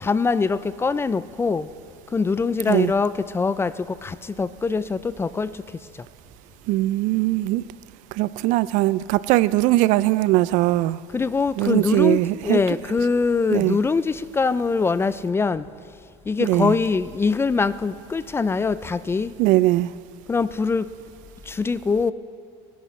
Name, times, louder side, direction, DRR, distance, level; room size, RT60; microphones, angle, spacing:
voice 1, 0.0-1.7 2.1-3.7 4.0-5.5 11.1-15.6 16.3-19.3 20.3-20.9 21.5-22.1, left 4 dB, 15° left, 16 dB, 0.4 m, -23 dB
voice 2, 6.7-7.6 8.1-11.0 11.6-12.6 13.5-13.8 16.4-16.7 19.4-19.9, right 17 dB, 60° right, 18 dB, 0.4 m, -20 dB
30.0 x 11.0 x 3.2 m, 2.2 s
supercardioid pair, 100°, 15 cm